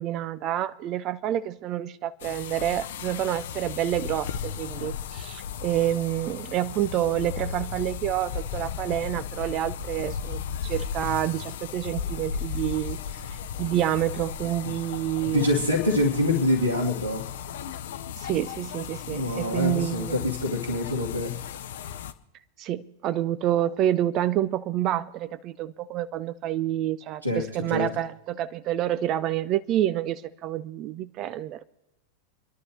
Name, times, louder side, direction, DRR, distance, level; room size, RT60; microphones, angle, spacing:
voice 1, 0.0-13.0 13.6-15.5 18.2-20.3 22.6-31.6, right 12 dB, 35° right, 0.5 m, -28 dB
sound 1, 2.2-22.1, left 7 dB, 55° left, 0.7 m, -35 dB
voice 2, 15.2-17.2 19.1-21.3 27.2-27.9, left 1 dB, 90° right, 2.4 m, -25 dB
29.0 x 11.5 x 3.3 m
figure-of-eight pair, 90°, 0 cm